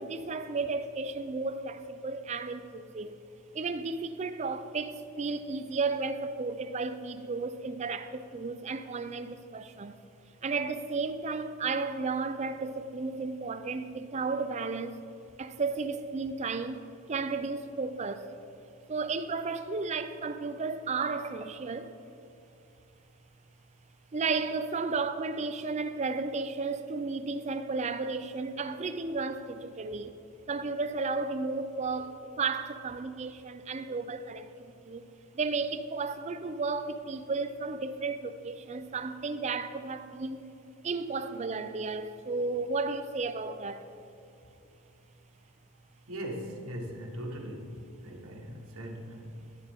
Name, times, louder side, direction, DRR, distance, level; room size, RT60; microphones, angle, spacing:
voice 1, 0.0-3.2 3.5-10.0 10.4-15.0 15.4-16.8 17.1-18.3 18.9-21.9 24.1-30.1 30.5-35.0 35.3-40.4 40.8-43.9, right 4 dB, 30° right, 0.4 m, -33 dB
voice 2, 46.1-49.6, equal, 75° right, 1.2 m, -40 dB
11.0 x 10.5 x 3.5 m
head